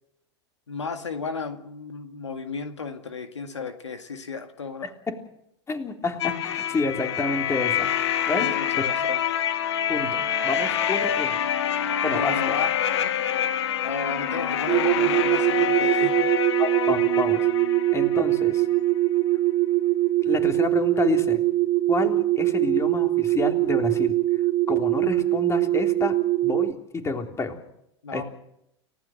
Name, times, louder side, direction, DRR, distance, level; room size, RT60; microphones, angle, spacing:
voice 1, 0.7-4.9 8.3-9.2 12.1-12.8 13.8-16.5 28.0-28.2, left 5 dB, 85° left, 7 dB, 2.0 m, -33 dB
voice 2, 5.7-7.9 8.3-8.5 9.9-11.4 12.0-12.6 16.6-18.7 20.2-21.4 21.9-24.2 24.7-26.2 26.4-27.6 28.1-28.2, left 3 dB, 20° left, 4 dB, 3.5 m, -29 dB
sound 1, 6.2-18.9, left 9 dB, 70° left, 1.6 m, -26 dB
sound 2, 14.7-26.7, right 16 dB, 40° right, 0.8 m, -22 dB
29.5 x 16.5 x 6.6 m, 0.79 s
hypercardioid pair, 90°, 15 cm